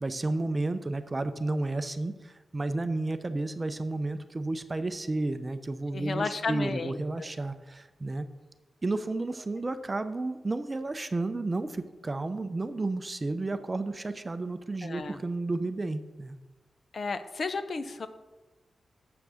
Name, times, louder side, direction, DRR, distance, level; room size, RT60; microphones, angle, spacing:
voice 1, 0.0-8.3 8.8-16.4, right 2 dB, 30° right, 10 dB, 0.6 m, -32 dB
voice 2, 5.9-7.3 14.8-15.2 16.9-18.1, left 4 dB, 55° left, 10 dB, 0.7 m, -33 dB
8.0 x 5.9 x 6.3 m, 1.2 s
wide cardioid pair, 95°, 0 cm